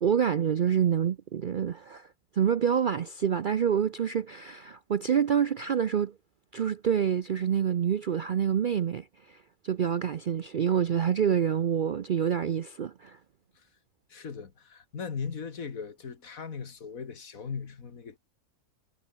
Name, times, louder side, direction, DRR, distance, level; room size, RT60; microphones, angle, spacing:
voice 1, 0.0-2.1 2.4-6.1 6.5-9.1 9.6-13.2, right 8 dB, 65° right, 0.5 m, -27 dB
voice 2, 14.1-18.2, left 6 dB, 65° left, 2.2 m, -38 dB
omnidirectional pair, 1.6 m